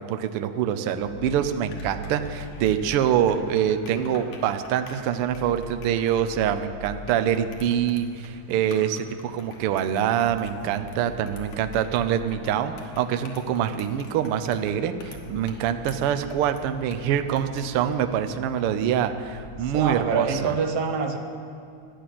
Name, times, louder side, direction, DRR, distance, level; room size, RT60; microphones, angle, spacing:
voice 1, 0.0-20.5, right 9 dB, 85° right, 9 dB, 1.2 m, -25 dB
sound 1, 1.0-18.7, left 4 dB, 90° left, 2.9 m, -49 dB
sound 2, 1.0-3.3 5.2-7.7 10.0-12.6 14.8-17.4 19.2-19.9, left 1 dB, 15° right, 3.8 m, -43 dB
sound 3, 1.5-20.5, left 4 dB, 30° left, 2.3 m, -48 dB
voice 2, 19.6-21.2, right 5 dB, 65° right, 5 dB, 1.6 m, -26 dB
14.0 x 10.0 x 7.6 m, 2.5 s
omnidirectional pair, 3.4 m